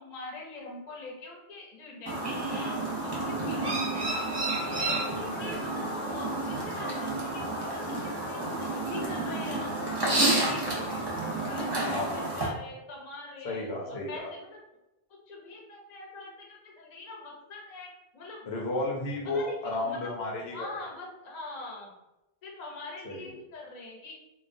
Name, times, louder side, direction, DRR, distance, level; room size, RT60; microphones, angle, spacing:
voice 1, 0.0-2.7 3.0-4.2 4.6-9.7 10.0-11.0 11.5-14.6 15.3-18.5 19.2-20.1 20.5-21.9 22.4-24.1, left 2 dB, 50° left, -2 dB, 0.7 m, -43 dB
Chirp tweet, 2.1-12.5, right 2 dB, 30° right, 0.5 m, -30 dB
voice 2, 3.3-3.6 5.1-5.4 11.9-12.3 13.4-14.3 18.5-20.7 23.0-23.3, left 2 dB, 80° left, -2 dB, 0.9 m, -33 dB
2.2 x 2.2 x 2.5 m, 0.94 s
omnidirectional pair, 1.0 m